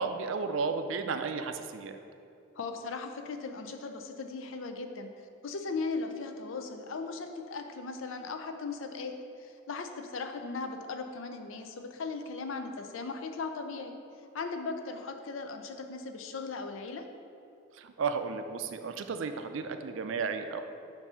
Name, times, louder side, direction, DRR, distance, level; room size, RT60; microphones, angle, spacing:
voice 1, 0.0-2.0 17.7-20.6, right 5 dB, 75° right, 8 dB, 0.4 m, -33 dB
voice 2, 2.6-9.1 9.4-13.9 14.3-17.0, left 4 dB, 80° left, 6 dB, 0.5 m, -38 dB
6.9 x 2.7 x 5.5 m, 2.6 s
head